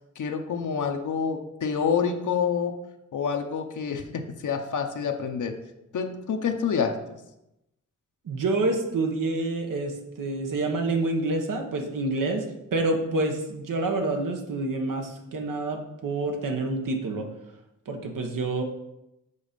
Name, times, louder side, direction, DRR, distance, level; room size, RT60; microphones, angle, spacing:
voice 1, 0.2-2.8 3.1-5.6 5.9-7.2, left 6 dB, 70° left, 5 dB, 0.8 m, -27 dB
voice 2, 8.2-12.4 12.7-17.3 17.9-18.6, right 2 dB, 90° right, 3 dB, 1.1 m, -27 dB
6.9 x 4.1 x 5.1 m, 0.89 s
cardioid pair, 80°, 31 cm